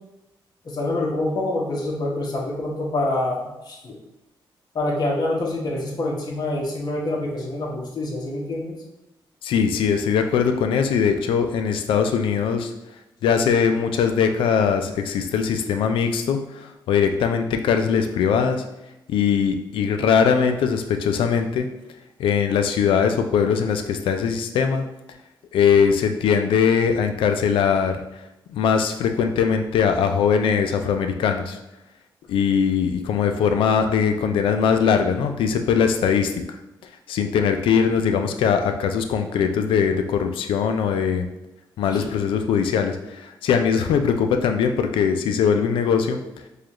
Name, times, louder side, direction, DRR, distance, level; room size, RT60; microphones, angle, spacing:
voice 1, 0.6-4.0 4.7-8.7 41.9-42.1, left 2 dB, 50° left, -3 dB, 1.0 m, -26 dB
voice 2, 9.4-12.7 13.2-18.6 19.1-21.7 22.2-24.9 25.5-28.0 28.5-31.6 32.3-36.6 37.1-41.3 41.8-46.2, left 6 dB, 90° left, 7 dB, 0.4 m, -21 dB
4.8 x 2.4 x 3.0 m, 0.95 s
cardioid pair, 80°, 9 cm